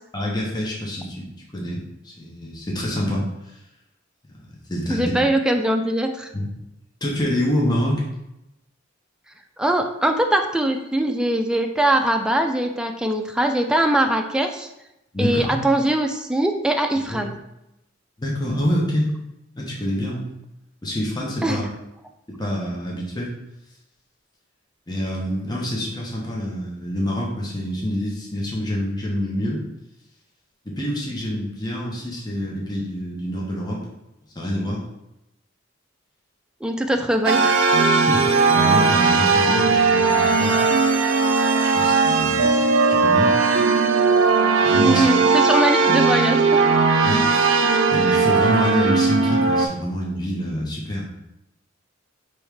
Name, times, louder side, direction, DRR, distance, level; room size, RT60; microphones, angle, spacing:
voice 1, 0.1-3.5 4.5-5.1 6.3-6.5 7.0-8.0 15.1-15.6 17.1-17.2 18.2-19.1 19.5-20.2 20.8-21.6 22.4-23.3 24.9-29.6 30.6-33.8 34.3-34.8 38.1-40.6 41.7-42.5 42.9-43.3 44.6-45.1 47.0-47.5 47.9-51.1, equal, 20° left, -3 dB, 0.9 m, -26 dB
voice 2, 4.9-6.3 9.6-14.7 15.2-17.3 21.4-21.6 36.6-37.6 44.8-46.7, right 1 dB, 5° right, 4 dB, 0.3 m, -21 dB
sound 1, 37.3-49.7, right 4 dB, 80° right, 0.4 m, -18 dB
3.4 x 3.1 x 4.8 m, 0.88 s
head